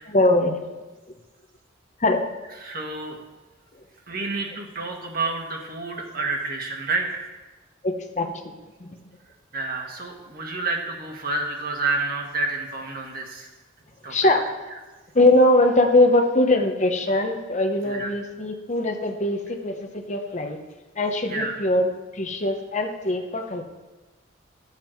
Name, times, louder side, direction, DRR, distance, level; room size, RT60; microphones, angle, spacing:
voice 1, 0.1-0.6 2.0-2.2 7.8-8.4 8.8-8.9 14.1-14.4 15.1-19.7 20.1-20.6 21.0-21.9 22.2-23.6, left 1 dB, 40° left, 4 dB, 0.9 m, -21 dB
voice 2, 2.5-3.2 4.1-7.3 9.5-13.5 14.0-14.3 17.8-18.1 21.3-21.6, right 3 dB, 50° right, 1 dB, 1.6 m, -29 dB
12.5 x 7.4 x 4.5 m, 1.2 s
head